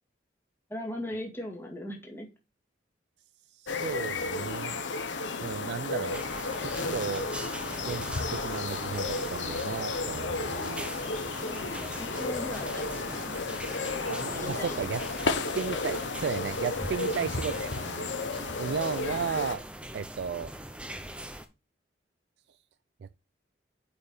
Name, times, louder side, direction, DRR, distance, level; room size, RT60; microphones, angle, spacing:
voice 1, 0.7-2.3 11.4-13.4 13.9-15.1 17.0-17.3, left 1 dB, 15° left, 1.9 m, -39 dB
voice 2, 3.5-4.8 5.4-6.2 6.6-7.3 7.9-10.9 11.2-11.6 14.1-15.0 15.5-18.1 18.6-19.6 19.9-20.5 23.0-23.2, right 6 dB, 60° right, 0.3 m, -34 dB
sound 1, 3.7-19.6, left 3 dB, 75° left, 1.0 m, -33 dB
sound 2, 6.1-21.5, right 1 dB, 5° right, 0.7 m, -41 dB
7.9 x 5.4 x 4.3 m
head